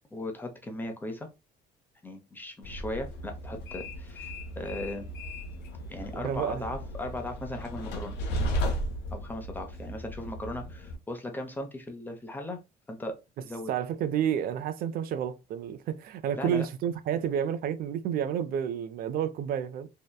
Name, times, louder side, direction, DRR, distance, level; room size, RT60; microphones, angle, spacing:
voice 1, 0.1-1.3 2.0-5.1 5.9-8.2 9.1-12.6 12.9-13.1 13.4-13.7 16.4-16.7, left 1 dB, 10° left, 0.6 m, -37 dB
Train, 2.6-11.0, equal, 90° left, 0.7 m, -35 dB
voice 2, 6.1-6.7 13.7-19.9, right 9 dB, 60° right, 0.4 m, -30 dB
2.8 x 2.1 x 2.2 m
cardioid pair, 110°, 17 cm